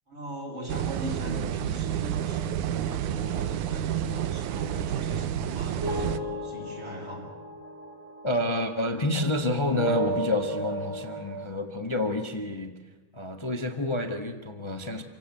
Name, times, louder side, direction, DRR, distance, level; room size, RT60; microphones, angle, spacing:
voice 1, 0.1-7.3, equal, 35° right, -2 dB, 6.6 m, -39 dB
sound 1, 0.7-6.2, right 10 dB, 80° right, 2.3 m, -30 dB
sound 2, 5.8-9.5 9.7-11.5, right 1 dB, 60° right, 3.9 m, -34 dB
voice 2, 8.2-12.8 13.1-15.0, left 1 dB, 40° left, 6 dB, 0.4 m, -29 dB
28.0 x 17.0 x 8.5 m, 1.2 s
omnidirectional pair, 3.5 m